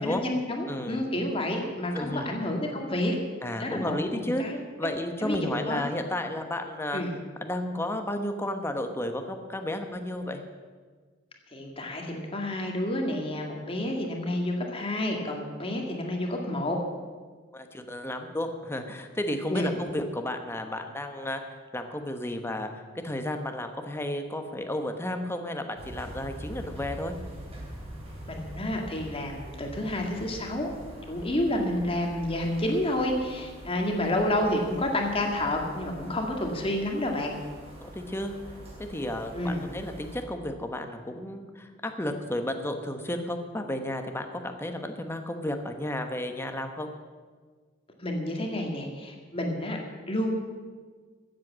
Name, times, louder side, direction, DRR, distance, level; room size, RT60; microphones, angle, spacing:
voice 1, 0.0-3.2 3.6-4.9 5.2-5.9 6.9-7.1 11.5-16.8 19.5-19.7 28.3-30.7 31.1-37.4 39.3-39.6 48.0-49.8 50.1-50.3, left 1 dB, 30° left, 2 dB, 2.0 m, -29 dB
voice 2, 0.7-1.0 1.9-2.3 3.4-7.0 7.4-10.4 17.5-21.4 21.7-27.1 37.8-38.3 38.8-46.9, left 1 dB, 10° left, 6 dB, 1.0 m, -32 dB
sound 1, 25.8-40.2, right 1 dB, 30° right, 3.5 m, -44 dB
14.5 x 7.8 x 7.4 m, 1.5 s
head